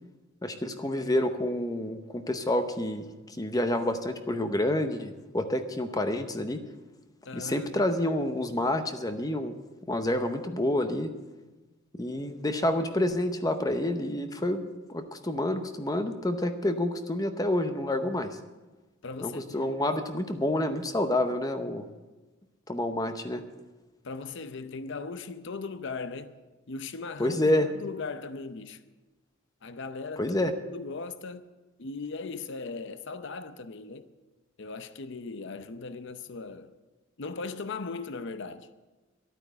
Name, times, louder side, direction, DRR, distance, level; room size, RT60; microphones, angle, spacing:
voice 1, 0.4-6.6 7.3-9.5 9.9-11.1 12.0-14.6 14.9-18.4 19.2-21.9 22.7-23.4 27.2-27.7 30.2-30.5, left 1 dB, 15° left, 0.7 m, -28 dB
voice 2, 7.2-7.7 19.0-19.8 24.0-26.3 26.7-28.8 29.6-31.4 31.8-34.1 34.6-36.7 37.2-38.7, left 4 dB, 55° left, 0.7 m, -38 dB
12.5 x 9.1 x 8.0 m
head